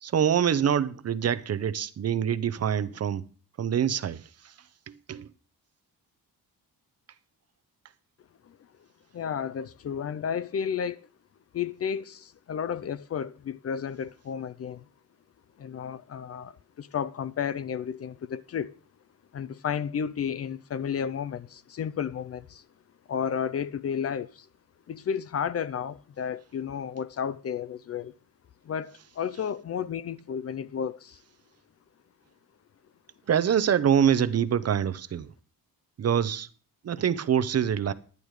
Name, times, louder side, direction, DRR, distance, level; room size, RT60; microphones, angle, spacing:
voice 1, 0.0-3.2 3.6-4.5 4.9-5.3 33.3-35.3 36.0-36.5 36.8-37.9, right 8 dB, 45° right, 0.7 m, -25 dB
voice 2, 9.1-11.1 11.5-14.8 15.6-18.8 19.3-22.6 23.1-24.5 24.9-28.1 28.6-31.2, left 7 dB, 40° left, 0.5 m, -32 dB
10.5 x 10.5 x 4.8 m
wide cardioid pair, 150°, 36 cm